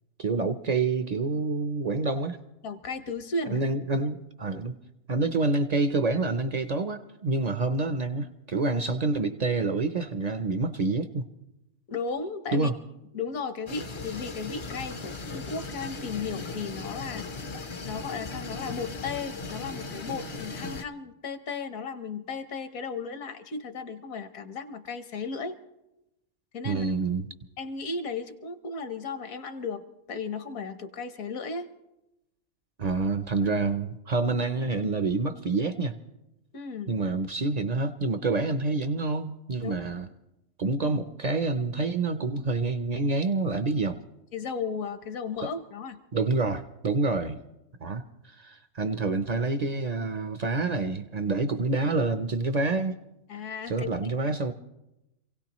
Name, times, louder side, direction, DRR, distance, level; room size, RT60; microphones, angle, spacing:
voice 1, 0.2-2.4 3.5-4.7 5.1-11.3 12.5-12.7 26.6-27.3 32.8-36.0 36.9-40.1 40.6-44.0 46.1-47.4 47.8-48.0 48.4-53.0 53.7-54.5, right 3 dB, 60° right, 9 dB, 0.4 m, -27 dB
voice 2, 2.6-3.6 11.9-12.7 13.1-17.3 17.8-25.6 26.5-26.9 27.6-31.7 36.5-37.0 39.6-39.7 44.3-46.0 53.3-53.9, left 4 dB, 70° left, 9 dB, 1.4 m, -35 dB
sound 1, 13.7-20.8, left 3 dB, 50° left, 0.3 m, -37 dB
27.0 x 17.0 x 3.0 m, 0.92 s
omnidirectional pair, 1.5 m